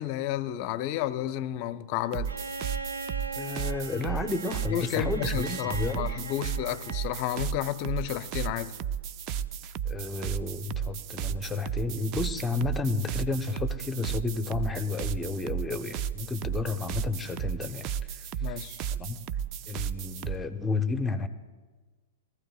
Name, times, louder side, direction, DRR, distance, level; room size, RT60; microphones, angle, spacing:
voice 1, 0.0-2.3 4.7-8.7 18.4-18.8, left 13 dB, 45° left, 14 dB, 0.6 m, -31 dB
sound 1, 2.1-20.4, right 9 dB, 40° right, 0.4 m, -34 dB
Bowed string instrument, 2.3-7.3 8.8-8.9, right 3 dB, 85° right, 0.8 m, -40 dB
voice 2, 3.3-6.1 9.9-19.2 19.7-21.3, left 3 dB, 10° left, 9 dB, 0.8 m, -32 dB
21.5 x 15.0 x 2.4 m, 1.4 s
hypercardioid pair, 110°, 0 cm